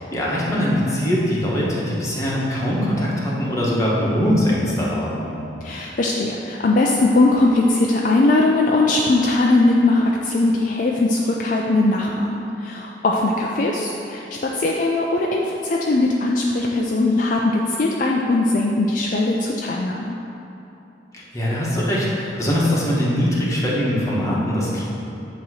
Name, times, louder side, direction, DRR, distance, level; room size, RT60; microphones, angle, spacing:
voice 1, 0.0-5.3 21.1-24.8, equal, 20° left, -6 dB, 1.2 m, -22 dB
voice 2, 5.6-20.2, left 2 dB, 45° left, -2 dB, 0.4 m, -20 dB
8.5 x 3.0 x 6.2 m, 2.9 s
head